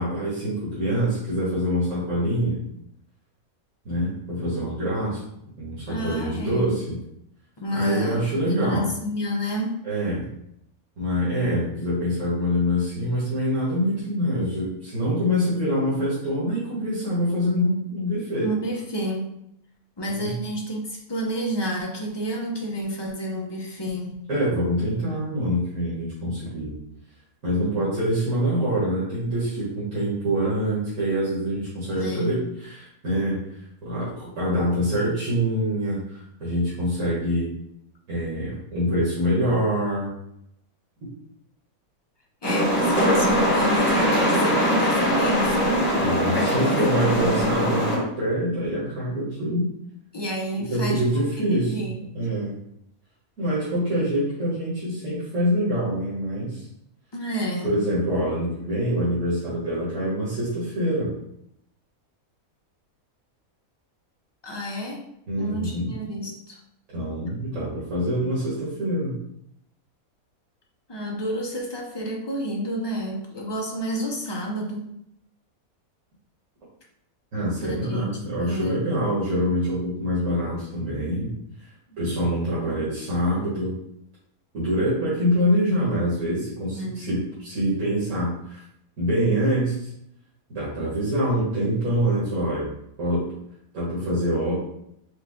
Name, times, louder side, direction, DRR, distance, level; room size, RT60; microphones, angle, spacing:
voice 1, 0.0-2.6 3.9-5.2 5.6-7.0 7.7-8.9 9.8-10.3 11.0-18.5 20.1-20.4 24.3-26.7 27.4-33.4 33.8-37.5 38.1-40.1 45.9-49.7 50.7-52.5 53.4-56.7 57.6-61.1 65.3-66.0 66.9-69.2 77.3-81.3 82.0-83.7 84.5-88.6 89.0-89.9 90.5-92.7 93.0-93.3 93.7-94.5, equal, 70° right, -10 dB, 1.9 m, -25 dB
voice 2, 5.9-6.8 7.6-8.2 8.4-9.9 18.4-19.3 20.0-24.1 32.0-32.3 42.4-45.8 46.3-47.4 50.1-51.1 51.5-52.0 57.1-57.8 64.4-65.0 65.4-66.6 70.9-74.8 77.6-79.4 86.7-87.1, equal, 35° left, -1 dB, 0.4 m, -30 dB
sound 1, 42.4-48.0, equal, 10° left, 1.1 m, -21 dB
5.1 x 2.4 x 3.6 m, 0.75 s
omnidirectional pair, 1.5 m